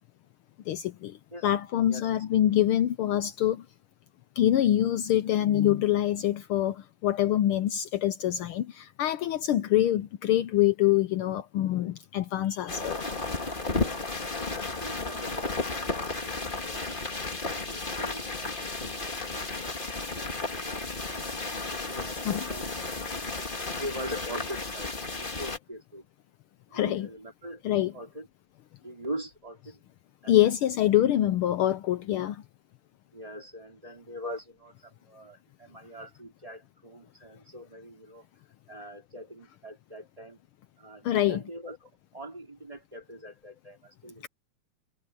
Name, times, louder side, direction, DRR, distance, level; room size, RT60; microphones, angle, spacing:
voice 1, 0.7-1.2 1.4-3.6 4.4-13.0 22.2-22.4 26.7-27.1 27.6-27.9 30.3-32.4 41.0-41.4, left 12 dB, 85° left, 1.2 m, -25 dB
sound 1, 12.7-25.6, left 3 dB, 20° left, 1.5 m, -33 dB
voice 2, 13.9-19.8 20.2-21.4 21.9-22.7 23.8-24.9 25.2-26.0 26.7-27.6 27.9-28.3 28.8-29.8 30.2-30.5 33.1-38.2 38.7-40.4 40.8-44.3, equal, 10° right, 3.3 m, -43 dB
omnidirectional pair, 3.3 m